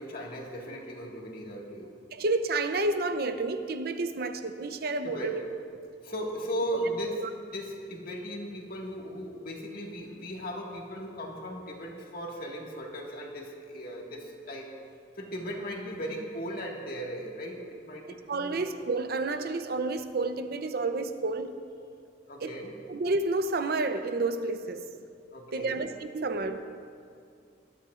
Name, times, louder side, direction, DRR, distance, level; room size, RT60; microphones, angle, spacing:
voice 1, 0.0-1.9 5.0-5.4 6.0-14.8 15.1-18.7 22.3-22.8 25.3-25.9, equal, 55° left, 1.8 m, -37 dB
voice 2, 2.1-5.4 7.2-7.3 18.3-21.5 22.4-22.6 22.9-24.8 25.5-26.7, right 3 dB, 60° right, 0.6 m, -30 dB
20.5 x 12.0 x 2.5 m
head